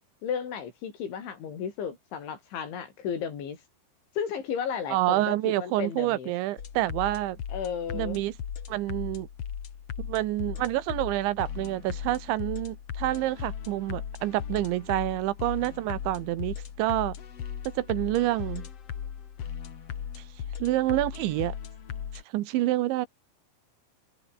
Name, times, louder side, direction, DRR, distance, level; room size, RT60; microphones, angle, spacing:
voice 1, 0.2-3.6 4.2-6.3 7.5-8.2, left 7 dB, 85° left, 6.6 m, -34 dB
voice 2, 4.9-7.4 7.9-8.3 8.7-9.3 10.0-17.2 17.7-18.7 20.2-20.3 20.6-21.6 22.3-23.1, right 16 dB, 85° right, 3.5 m, -28 dB
sound 1, 6.6-22.2, left 8 dB, 45° left, 2.2 m, -38 dB
omnidirectional pair, 5.2 m